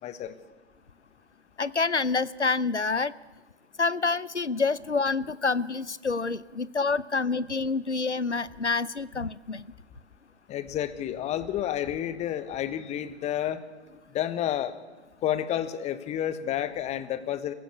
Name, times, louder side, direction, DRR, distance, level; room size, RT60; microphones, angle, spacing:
voice 1, 0.0-0.3 10.5-13.6 14.1-14.8 15.2-17.5, left 11 dB, 20° left, 13 dB, 1.3 m, -30 dB
voice 2, 1.6-3.1 3.8-9.6, left 4 dB, 90° left, 19 dB, 0.8 m, -27 dB
28.5 x 16.0 x 8.5 m, 1.2 s
figure-of-eight pair, 110°, 34 cm